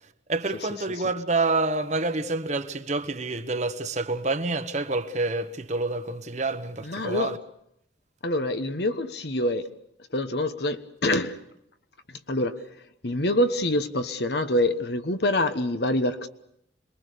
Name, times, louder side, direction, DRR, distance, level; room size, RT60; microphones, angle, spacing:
voice 1, 0.3-7.4, right 3 dB, 35° right, 1.1 m, -28 dB
voice 2, 6.8-7.3 8.2-9.7 10.1-11.4 12.1-12.6 13.0-16.3, left 1 dB, 55° left, 1.2 m, -26 dB
26.5 x 21.5 x 6.8 m
head